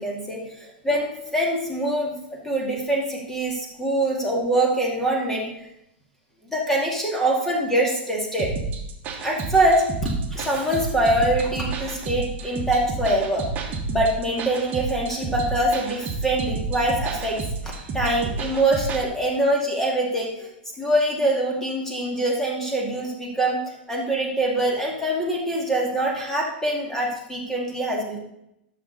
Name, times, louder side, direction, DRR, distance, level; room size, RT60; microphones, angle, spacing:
voice 1, 0.0-5.7 6.5-8.5 9.2-13.4 13.9-20.5 20.8-23.6 23.9-28.2, right 1 dB, 5° left, -2 dB, 2.4 m, -24 dB
sound 1, 8.4-19.0, right 3 dB, 30° right, 1.6 m, -30 dB
12.5 x 6.6 x 4.1 m, 0.80 s
hypercardioid pair, 100°, 6 cm